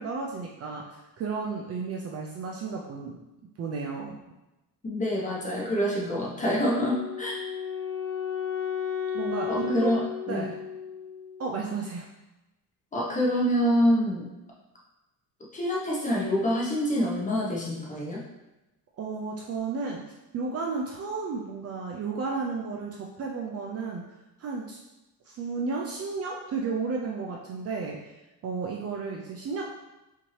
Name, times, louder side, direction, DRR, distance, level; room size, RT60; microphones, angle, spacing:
voice 1, 0.0-3.2 3.6-4.2 9.1-9.9 10.3-10.5 11.4-12.1 19.0-20.0 20.3-24.0 24.4-24.8 25.3-28.1 28.4-29.7, right 4 dB, 40° right, -1 dB, 0.4 m, -33 dB
voice 2, 4.8-7.4 9.5-10.5 12.9-14.3 15.5-18.2, equal, 20° left, -4 dB, 0.9 m, -26 dB
Wind instrument woodwind instrument, 6.7-11.8, left 8 dB, 85° left, 1.2 m, -34 dB
5.7 x 2.7 x 3.2 m, 1.0 s
cardioid pair, 160°, 40 cm